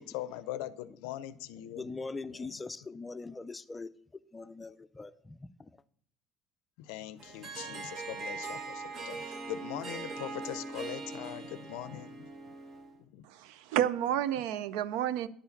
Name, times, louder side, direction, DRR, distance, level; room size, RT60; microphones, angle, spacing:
voice 1, 0.0-1.9 2.3-2.6 6.8-12.5 13.0-13.3, left 13 dB, 85° left, 0.4 m, -42 dB
voice 2, 1.8-3.9 4.3-5.7, left 3 dB, 15° left, 0.4 m, -41 dB
Harp, 7.2-13.0, right 3 dB, 45° right, 1.2 m, -41 dB
voice 3, 13.2-15.3, right 11 dB, 85° right, 0.4 m, -30 dB
10.5 x 4.8 x 5.2 m
cardioid pair, 110°, 0 cm